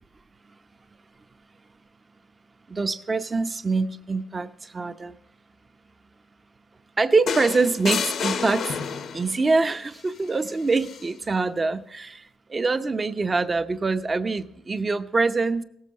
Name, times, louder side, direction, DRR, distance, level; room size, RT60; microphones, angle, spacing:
voice 1, 2.7-5.2 7.0-8.7 9.1-12.2 12.5-15.6, right 3 dB, 30° right, 10 dB, 0.8 m, -24 dB
sound 1, 7.3-9.4 10.8-11.0, left 6 dB, 60° left, 0.8 m, -29 dB
17.5 x 7.5 x 6.3 m, 0.75 s
cardioid pair, 90°, 0 cm